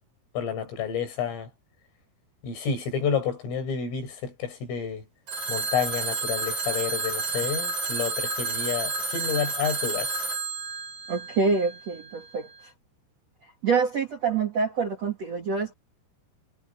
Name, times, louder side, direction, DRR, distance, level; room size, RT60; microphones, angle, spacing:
voice 1, 0.4-1.5 2.4-5.0 5.5-10.2, left 7 dB, 70° left, 9.4 m, -30 dB
Telephone, 5.3-12.1, right 3 dB, 35° right, 9.2 m, -30 dB
voice 2, 11.1-12.5 13.6-15.7, right 5 dB, 55° right, 1.9 m, -26 dB
omnidirectional pair, 6.0 m